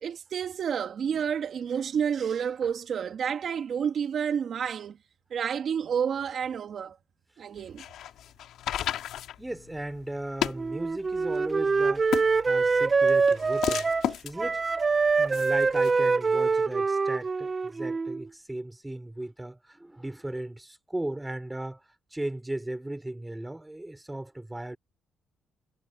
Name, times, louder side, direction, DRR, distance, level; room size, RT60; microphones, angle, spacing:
voice 1, 0.0-5.0 5.3-7.0 7.4-7.8, right 7 dB, 60° right, 1.9 m, -30 dB
sound 1, 7.6-15.9, left 11 dB, 80° left, 2.3 m, -35 dB
voice 2, 9.4-13.9 14.2-14.6 15.2-21.8 22.1-24.8, right 1 dB, 10° right, 3.5 m, -36 dB
Wind instrument woodwind instrument, 10.6-14.1 14.4-18.2, right 4 dB, 30° right, 0.6 m, -25 dB
cardioid pair, 90°, 0 cm